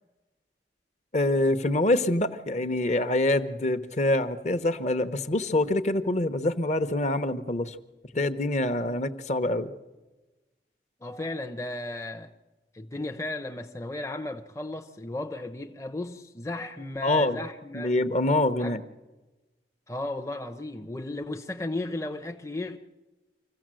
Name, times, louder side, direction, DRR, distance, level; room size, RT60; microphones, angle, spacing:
voice 1, 1.1-7.8 8.1-9.7 17.0-17.4 17.7-18.8, left 1 dB, 40° left, 1.0 m, -25 dB
voice 2, 11.0-12.3 12.7-17.9 18.6-18.8 19.9-22.8, left 2 dB, 15° left, 0.7 m, -35 dB
26.0 x 15.5 x 7.6 m
head